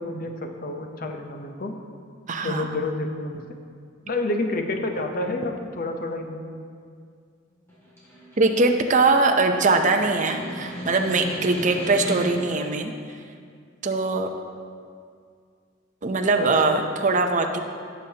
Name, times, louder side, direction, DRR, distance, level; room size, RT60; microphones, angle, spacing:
voice 1, 0.0-1.8 2.4-3.4 4.1-6.4 16.4-16.6, left 2 dB, 45° left, 4 dB, 0.8 m, -29 dB
voice 2, 2.3-2.8 8.4-12.9 13.8-14.3 16.0-17.6, right 3 dB, 40° right, 4 dB, 0.6 m, -21 dB
Snare drum, 7.7-12.6, equal, 15° left, 2.3 m, -35 dB
16.0 x 6.5 x 2.9 m, 2.2 s
head